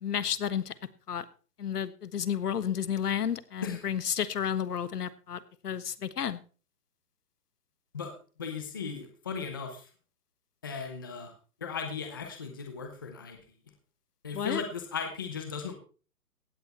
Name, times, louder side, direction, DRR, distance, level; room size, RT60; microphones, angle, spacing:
voice 1, 0.0-0.7 1.1-1.2 1.6-6.4 14.3-14.6, left 8 dB, 75° left, 15 dB, 1.4 m, -31 dB
voice 2, 8.4-9.9 10.6-11.3 11.6-13.4 14.2-15.7, left 5 dB, 15° left, 5 dB, 0.7 m, -36 dB
16.5 x 9.5 x 4.3 m, 0.37 s
hypercardioid pair, 175°, 47 cm